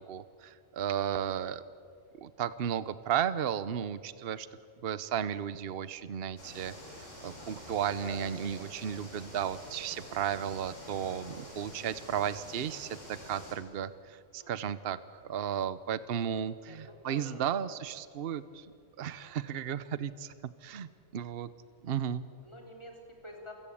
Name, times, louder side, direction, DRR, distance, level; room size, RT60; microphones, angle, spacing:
voice 1, 0.0-1.6 2.2-4.5 4.8-18.7 19.0-20.3 20.6-21.5 21.8-22.3, right 9 dB, 55° right, 15 dB, 1.0 m, -34 dB
sound 1, 6.4-13.5, left 1 dB, 75° left, 5.9 m, -48 dB
voice 2, 7.2-7.5 7.8-8.4 10.8-11.5 14.4-14.7 16.5-16.8 17.0-17.6 19.2-19.5 22.4-23.5, left 1 dB, 20° left, 1 dB, 4.0 m, -50 dB
28.0 x 16.0 x 8.6 m, 2.3 s
omnidirectional pair, 1.3 m